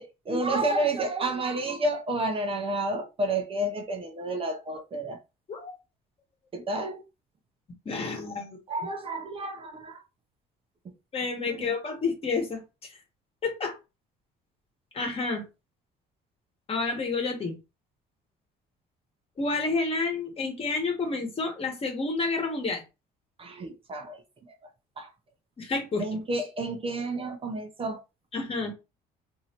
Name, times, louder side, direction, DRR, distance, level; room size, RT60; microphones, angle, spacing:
voice 1, 0.0-5.2 6.5-7.0 8.7-10.0 11.5-11.7 23.4-24.2 25.0-25.1 26.0-28.0, right 2 dB, 35° right, 0.6 m, -30 dB
voice 2, 7.8-8.6 11.1-12.9 13.4-13.8 14.9-15.5 16.7-17.5 19.4-22.8 25.6-26.1 28.3-28.7, left 3 dB, 35° left, 1.1 m, -29 dB
3.1 x 2.7 x 2.9 m
cardioid pair, 110°, 17 cm